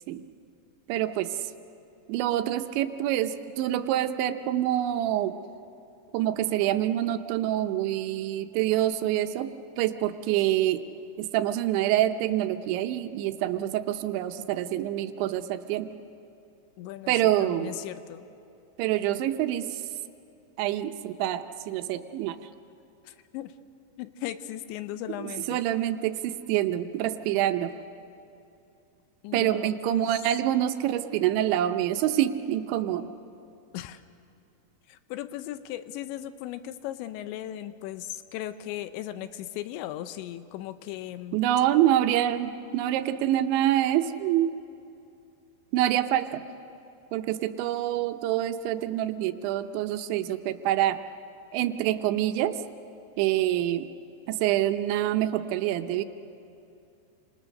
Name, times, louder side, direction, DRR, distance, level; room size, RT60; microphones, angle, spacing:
voice 1, 0.9-1.5 2.1-5.3 6.1-9.5 9.8-10.8 11.2-15.9 17.1-17.8 18.8-19.8 20.6-22.4 25.5-27.8 29.3-33.1 41.3-44.5 45.7-46.4 47.1-51.0 51.5-52.6 53.2-53.9 54.3-56.0, right 12 dB, 85° right, 8 dB, 3.2 m, -26 dB
voice 2, 16.8-18.3 23.1-23.5 24.0-25.6 29.2-30.1 33.7-34.0 34.9-41.4, left 13 dB, 85° left, 11 dB, 3.0 m, -37 dB
29.0 x 26.5 x 6.5 m, 2.7 s
omnidirectional pair, 5.2 m